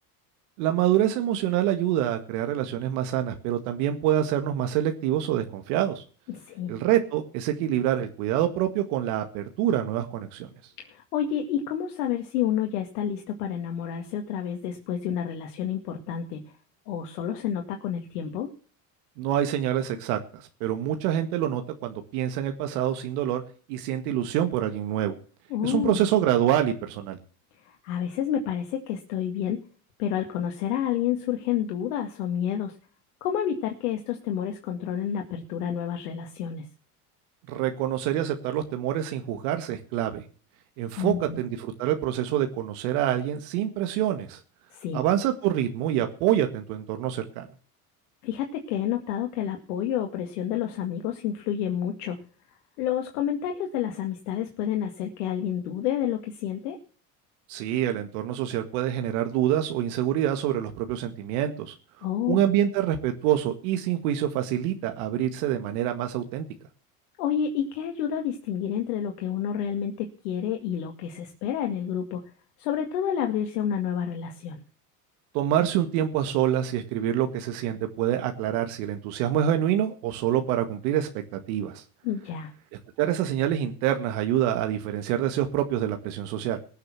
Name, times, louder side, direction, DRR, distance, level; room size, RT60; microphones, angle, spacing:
voice 1, 0.6-6.0 6.7-10.5 19.2-23.4 23.7-25.2 25.6-27.2 37.5-40.2 40.8-44.4 44.9-47.5 57.5-61.7 62.3-66.4 75.3-81.8 83.0-86.6, right 11 dB, 75° right, 6 dB, 1.9 m, -26 dB
voice 2, 6.3-6.8 10.8-16.5 16.9-18.5 25.5-26.0 27.6-29.6 30.0-32.7 33.2-36.7 41.0-41.4 44.7-45.0 48.2-52.2 52.8-56.8 62.0-62.5 67.2-72.3 72.6-74.6 82.0-82.5, left 9 dB, 80° left, 4 dB, 2.1 m, -29 dB
20.0 x 6.8 x 6.0 m, 0.41 s
supercardioid pair, 95°, 45 cm